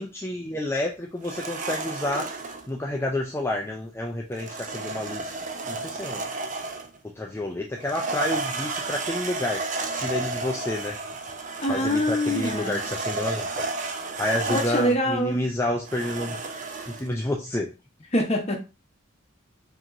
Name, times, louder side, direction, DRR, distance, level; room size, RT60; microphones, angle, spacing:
voice 1, 0.0-2.3 2.7-5.4 5.7-6.3 7.2-9.6 10.0-11.0 11.7-13.5 14.2-16.4 16.9-17.7, left 1 dB, 10° left, 0 dB, 0.4 m, -29 dB
sound 1, 1.2-2.7 4.4-7.0 7.8-15.0 15.9-17.1, right 3 dB, 40° right, 0.5 m, -32 dB
voice 2, 11.6-12.8 14.5-15.4 18.1-18.6, equal, 30° left, 2 dB, 1.0 m, -24 dB
5.1 x 3.0 x 2.6 m, 0.30 s
head